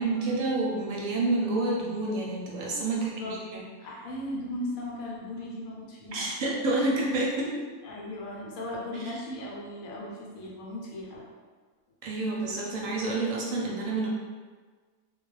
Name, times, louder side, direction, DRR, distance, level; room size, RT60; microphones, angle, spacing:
voice 1, 0.0-3.6 6.1-7.6 8.9-9.2 12.0-14.1, right 2 dB, 70° right, -3 dB, 0.9 m, -29 dB
voice 2, 2.9-3.4 3.8-6.3 7.8-11.2, left 1 dB, 75° left, -3 dB, 1.0 m, -37 dB
2.3 x 2.3 x 3.1 m, 1.5 s
omnidirectional pair, 1.6 m